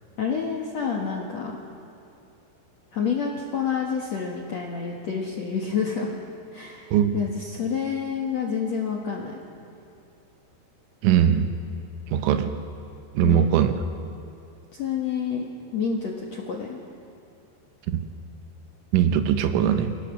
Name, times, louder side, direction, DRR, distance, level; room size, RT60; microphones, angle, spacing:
voice 1, 0.2-1.6 2.9-6.2 6.5-9.3 13.2-13.4 14.7-15.5 15.7-16.8, left 6 dB, 65° left, -1 dB, 1.7 m, -28 dB
voice 2, 11.0-11.5 12.1-12.5 13.2-13.7 17.9-18.0 18.9-19.9, right 9 dB, 90° right, 8 dB, 3.5 m, -20 dB
28.5 x 17.5 x 6.1 m, 2.7 s
omnidirectional pair, 5.4 m